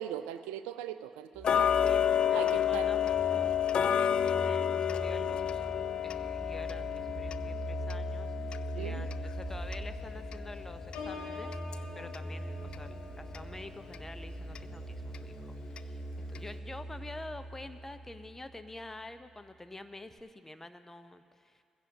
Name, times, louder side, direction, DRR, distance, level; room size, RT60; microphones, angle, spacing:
voice 1, 0.0-1.7 2.3-2.9 8.8-9.1, right 11 dB, 70° right, 11 dB, 0.4 m, -40 dB
sound 1, 1.3-18.8, right 1 dB, ahead, 3.5 m, -42 dB
Tick-tock, 1.4-12.3 12.7-12.8 13.3-13.4 13.9-14.0 14.6-14.7 15.1-15.2 15.8-15.9 16.4-16.5, left 9 dB, 50° left, 0.4 m, -31 dB
voice 2, 1.5-3.5 3.8-5.6 6.0-21.6, left 2 dB, 15° left, 10 dB, 0.9 m, -48 dB
Piano, 10.9-16.6 17.0-17.4, left 4 dB, 70° left, 2.8 m, -48 dB
21.0 x 16.0 x 2.9 m, 2.3 s
figure-of-eight pair, 40°, 2 cm